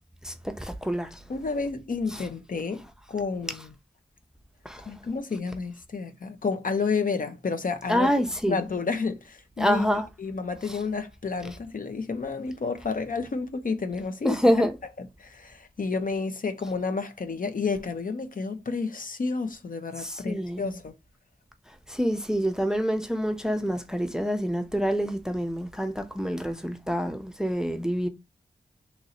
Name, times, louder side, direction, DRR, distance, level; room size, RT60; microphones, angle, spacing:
voice 1, 0.2-1.2 2.1-2.2 4.6-4.9 7.9-8.6 9.6-10.1 10.7-10.8 14.2-14.8 20.0-20.6 21.9-28.1, equal, 5° right, 0.6 m, -27 dB
voice 2, 1.3-3.7 4.9-8.1 8.4-9.9 10.2-14.4 15.0-20.9, left 4 dB, 55° left, 0.6 m, -30 dB
3.0 x 2.7 x 4.1 m
cardioid pair, 55°, 17 cm